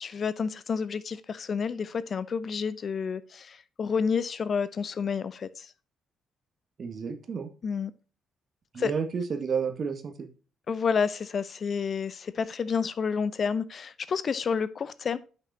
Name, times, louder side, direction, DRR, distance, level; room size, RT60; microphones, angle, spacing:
voice 1, 0.0-5.7 7.6-7.9 8.8-8.9 10.7-15.2, left 6 dB, 45° left, 0.6 m, -30 dB
voice 2, 6.8-7.5 8.7-10.3, right 6 dB, 50° right, 1.7 m, -31 dB
10.5 x 5.8 x 2.8 m
hypercardioid pair, 45°, 0 cm